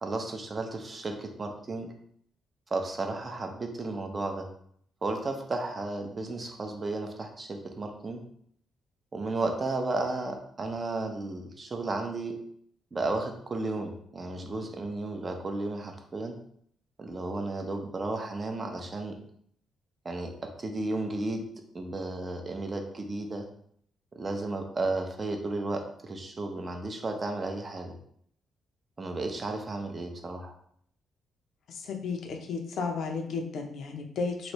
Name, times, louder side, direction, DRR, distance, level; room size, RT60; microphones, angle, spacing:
voice 1, 0.0-1.9 2.7-4.5 5.0-8.2 9.1-12.3 12.9-16.3 17.0-19.1 20.0-20.3 20.6-21.4 21.7-23.4 24.1-27.9 29.0-30.5, right 2 dB, 30° right, 4 dB, 0.6 m, -33 dB
voice 2, 31.7-34.5, left 4 dB, 70° left, 3 dB, 0.5 m, -33 dB
3.1 x 2.6 x 3.0 m, 0.66 s
cardioid pair, 115°, 0 cm